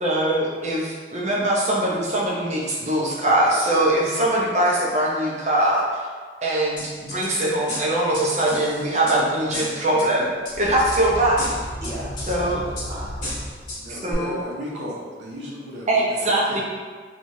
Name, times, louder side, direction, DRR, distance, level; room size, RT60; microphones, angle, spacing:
voice 1, 0.0-5.8 6.4-10.3 10.6-11.6 12.3-12.6 13.9-14.4 15.9-16.6, right 1 dB, 40° right, -4 dB, 0.5 m, -22 dB
sound 1, 6.8-7.3 7.7-9.2 9.5-10.1 10.5-11.0 11.4-12.4 12.8-12.9 13.2-13.8 14.1-14.2, left 1 dB, 50° left, 1.4 m, -33 dB
sound 2, 10.4-14.2, equal, 65° left, 0.5 m, -34 dB
voice 2, 11.8-13.7 16.4-16.6, equal, 15° right, -10 dB, 0.9 m, -37 dB
voice 3, 13.8-16.4, equal, 80° right, -5 dB, 0.7 m, -35 dB
3.1 x 2.3 x 2.6 m, 1.5 s
head